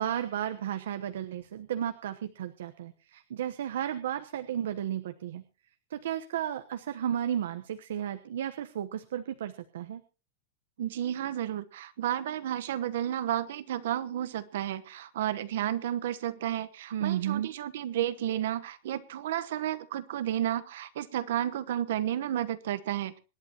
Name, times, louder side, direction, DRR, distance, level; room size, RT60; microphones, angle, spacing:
voice 1, 0.0-5.4 5.9-10.0 16.9-17.5, right 10 dB, 90° right, 9 dB, 1.0 m, -33 dB
voice 2, 10.8-23.2, right 11 dB, 65° right, 12 dB, 1.1 m, -32 dB
26.0 x 11.0 x 2.9 m, 0.31 s
supercardioid pair, 175°, 0 cm